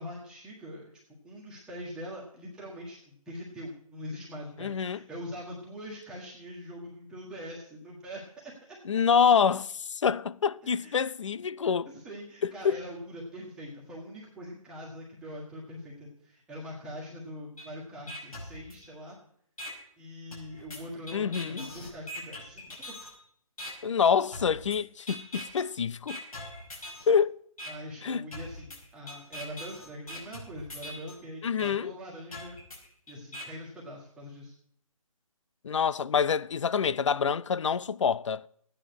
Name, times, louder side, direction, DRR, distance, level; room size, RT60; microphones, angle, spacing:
voice 1, 0.0-8.5 10.6-11.0 11.8-19.2 20.0-23.0 27.7-32.6 33.1-34.5, equal, 5° right, 1.5 m, -43 dB
voice 2, 4.6-5.0 8.9-11.9 12.4-12.8 21.1-21.7 23.8-26.2 27.1-27.4 28.0-28.2 31.4-31.9 35.6-38.5, left 6 dB, 55° left, 0.5 m, -26 dB
sound 1, 17.6-17.7 18.1-19.1 19.6-19.7 20.3-23.1 23.6-23.7 24.3-24.8 25.1-25.6 26.1-27.1 27.6-27.7 28.3-31.1 31.6-31.7 32.3-33.4, left 1 dB, 75° left, 5.4 m, -42 dB
14.5 x 9.2 x 6.2 m
figure-of-eight pair, 155°, 19 cm